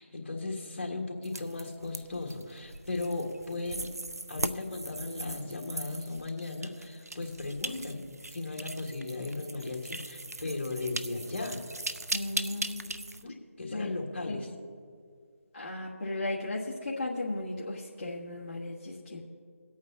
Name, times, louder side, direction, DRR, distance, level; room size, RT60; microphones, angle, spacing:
voice 1, 0.0-3.9 4.3-11.7 13.2-14.5, left 2 dB, 45° left, 1 dB, 1.7 m, -36 dB
sound 1, 1.2-13.2, right 2 dB, 90° right, 0.6 m, -39 dB
voice 2, 12.1-13.0 13.7-13.9 14.3-14.5 15.5-19.2, left 2 dB, 25° left, -8 dB, 1.3 m, -35 dB
24.5 x 8.6 x 2.8 m, 2.1 s
figure-of-eight pair, 160°, 8 cm